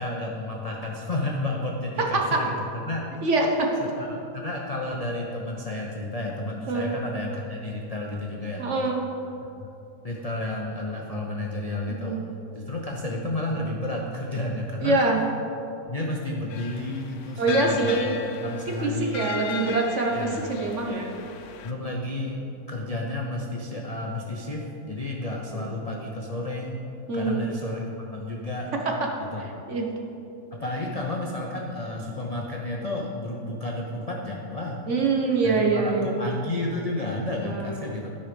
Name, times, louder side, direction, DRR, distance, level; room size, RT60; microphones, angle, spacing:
voice 1, 0.0-3.2 3.8-8.7 9.6-9.7 10.0-12.3 12.5-15.0 15.9-18.0 18.4-19.2 20.1-20.5 21.6-26.8 27.1-28.7 29.3-29.5 30.5-34.8 35.4-38.1, left 2 dB, 40° left, -1 dB, 0.5 m, -31 dB
voice 2, 2.0-2.4 3.2-3.7 6.7-6.9 8.6-9.0 11.9-12.2 14.8-15.2 17.4-18.1 18.5-18.6 18.8-21.1 25.5-25.7 27.1-27.4 29.7-29.9 34.9-36.2 37.4-37.9, right 3 dB, 50° right, 1 dB, 1.2 m, -24 dB
sound 1, 16.5-21.7, left 7 dB, 85° left, 1.3 m, -37 dB
12.5 x 5.7 x 5.2 m, 2.8 s
omnidirectional pair, 1.8 m